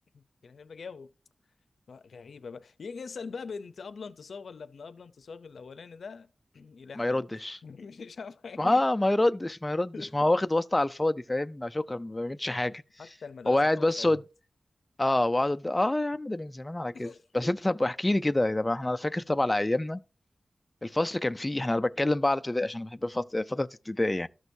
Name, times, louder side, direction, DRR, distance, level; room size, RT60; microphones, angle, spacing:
voice 1, 0.1-1.1 1.9-7.3 7.6-8.8 9.9-10.3 12.5-14.2 16.9-17.8, left 5 dB, 85° left, 0.6 m, -43 dB
voice 2, 7.0-7.6 8.6-12.7 13.5-14.2 15.0-17.1 17.3-20.0 20.8-24.3, left 1 dB, 20° left, 0.4 m, -27 dB
13.0 x 6.2 x 2.6 m
wide cardioid pair, 90°, 0 cm